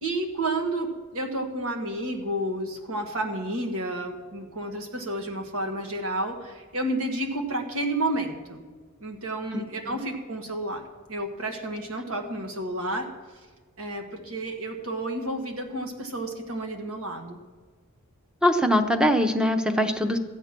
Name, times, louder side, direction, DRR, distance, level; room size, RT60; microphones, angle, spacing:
voice 1, 0.0-8.6 9.0-10.8 11.1-13.1 13.8-17.4, right 1 dB, 70° right, 3 dB, 1.6 m, -31 dB
voice 2, 9.5-10.0 18.4-20.2, equal, 5° right, 7 dB, 0.7 m, -23 dB
14.5 x 8.1 x 6.0 m, 1.4 s
head